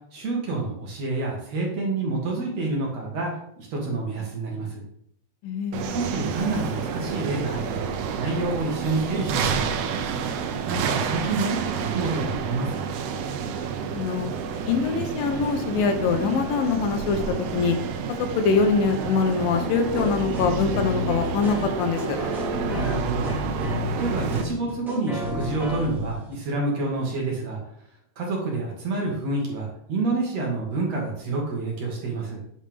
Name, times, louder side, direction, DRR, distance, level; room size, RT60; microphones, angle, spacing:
voice 1, 0.1-3.3 3.7-4.8 5.9-7.8 8.2-9.6 10.7-13.1 22.8-23.3 24.0-27.6 28.2-32.4, right 3 dB, 55° right, -2 dB, 2.1 m, -28 dB
voice 2, 5.4-5.9 13.9-14.3 14.7-17.8 18.2-22.2, left 5 dB, 75° left, 6 dB, 2.3 m, -24 dB
sound 1, 5.7-24.4, right 6 dB, 80° right, 2.7 m, -30 dB
Funky Groove, 19.9-26.3 27.0-27.1, left 1 dB, ahead, 0.6 m, -31 dB
8.8 x 5.5 x 3.4 m, 0.70 s
omnidirectional pair, 4.7 m